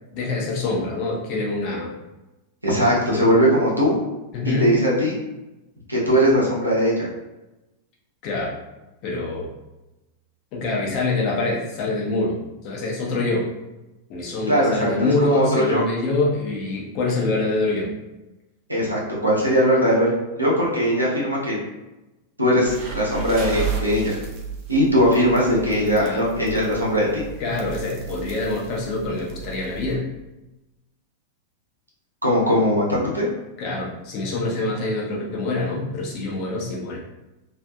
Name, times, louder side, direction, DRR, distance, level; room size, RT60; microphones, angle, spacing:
voice 1, 0.1-1.9 4.3-4.7 8.2-8.6 9.0-9.5 10.5-12.4 12.6-13.5 14.1-17.9 25.8-26.2 27.4-30.0 33.6-37.0, left 2 dB, 40° left, -3 dB, 0.7 m, -25 dB
voice 2, 2.6-4.0 4.6-5.1 5.9-7.1 14.5-15.8 18.7-21.6 22.4-24.2 24.7-27.2 32.2-33.3, equal, 85° right, -5 dB, 0.8 m, -20 dB
sound 1, 22.7-29.9, right 6 dB, 40° right, 0.5 m, -33 dB
2.6 x 2.5 x 2.3 m, 1.0 s
figure-of-eight pair, 90°, 0 cm